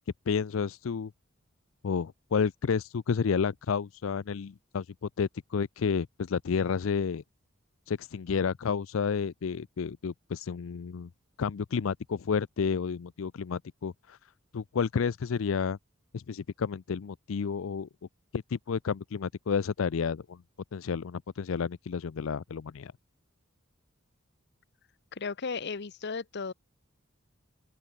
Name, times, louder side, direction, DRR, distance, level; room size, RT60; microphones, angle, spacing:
voice 1, 0.3-1.1 1.8-7.2 7.9-11.1 11.4-15.8 16.1-17.9 18.3-20.4 20.7-22.9, left 6 dB, 75° left, 0.4 m, -31 dB
voice 2, 25.1-26.5, left 5 dB, 55° left, 0.8 m, -35 dB
head